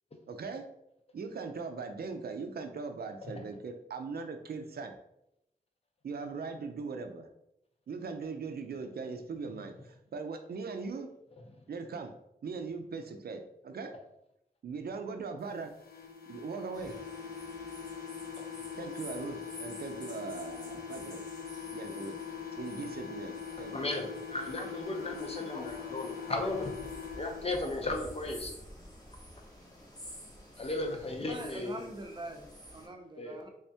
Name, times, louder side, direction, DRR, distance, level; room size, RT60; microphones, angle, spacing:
voice 1, 0.3-0.6 1.1-4.9 6.0-7.3 7.9-11.1 11.7-12.1 12.4-13.9 14.6-15.7 16.3-17.0 18.8-21.2 21.7-23.7, right 4 dB, 85° right, 6 dB, 0.5 m, -40 dB
sound 1, 15.7-27.8, left 7 dB, 80° left, 0.7 m, -42 dB
sound 2, 16.7-32.9, equal, 25° left, 1.0 m, -51 dB
voice 2, 23.7-26.8 27.2-28.5 30.6-31.8 33.2-33.5, left 2 dB, 40° left, 3 dB, 0.6 m, -35 dB
voice 3, 31.3-33.5, right 2 dB, 30° right, 3 dB, 0.6 m, -44 dB
3.5 x 3.4 x 2.7 m, 0.80 s
wide cardioid pair, 120°, 16 cm